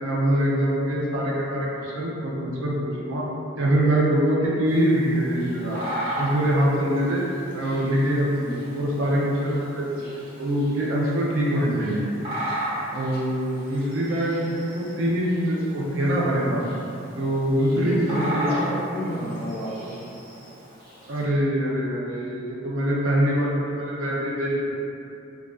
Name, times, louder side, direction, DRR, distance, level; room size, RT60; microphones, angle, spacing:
voice 1, 0.0-3.2 3.6-5.8 6.2-7.2 7.5-9.8 10.4-12.1 12.9-16.6 17.1-18.1 18.3-18.6 21.1-24.7, right 1 dB, 85° right, -5 dB, 0.5 m, -24 dB
Bird vocalization bird call bird song, 4.7-21.2, right 1 dB, 30° right, 1.0 m, -36 dB
voice 2, 17.7-20.0, equal, 5° right, -12 dB, 0.7 m, -30 dB
2.3 x 2.3 x 2.2 m, 2.7 s
head